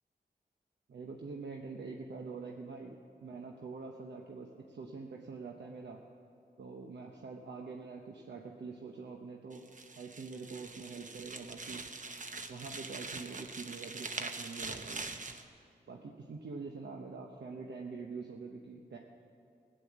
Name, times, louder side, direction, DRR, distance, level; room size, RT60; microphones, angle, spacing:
voice 1, 0.9-6.0 6.6-9.6 10.0-11.8 12.5-15.1 15.9-19.0, right 4 dB, 80° right, 1 dB, 0.9 m, -45 dB
sound 1, 9.5-15.4, right 3 dB, 45° right, 1.0 m, -43 dB
15.5 x 9.2 x 7.4 m, 2.3 s
cardioid pair, 50°, 18 cm